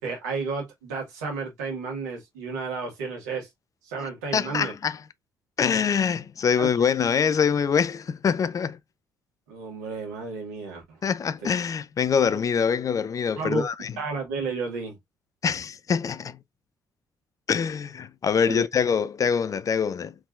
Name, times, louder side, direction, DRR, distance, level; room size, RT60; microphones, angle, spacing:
voice 1, 0.0-3.5 3.8-4.7 6.6-6.7 9.5-11.0 13.4-13.7 14.0-15.0 18.5-18.7, right 4 dB, 80° right, 1.9 m, -32 dB
voice 2, 4.3-5.0 5.6-8.8 11.0-14.0 15.4-16.4 17.5-20.1, left 6 dB, 40° left, 0.5 m, -24 dB
4.5 x 3.6 x 2.4 m
hypercardioid pair, 50°, 9 cm